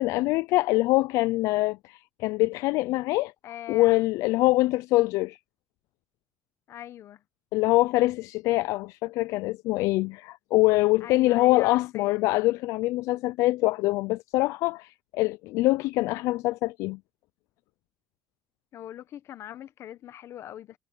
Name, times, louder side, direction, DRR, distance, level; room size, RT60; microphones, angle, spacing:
voice 1, 0.0-3.3 3.7-5.4 7.5-17.0, left 19 dB, 85° left, 0.3 m, -24 dB
voice 2, 3.4-4.0 6.7-7.2 11.0-12.2 18.7-20.8, left 11 dB, 60° left, 1.1 m, -41 dB
cardioid pair, 105°, 5 cm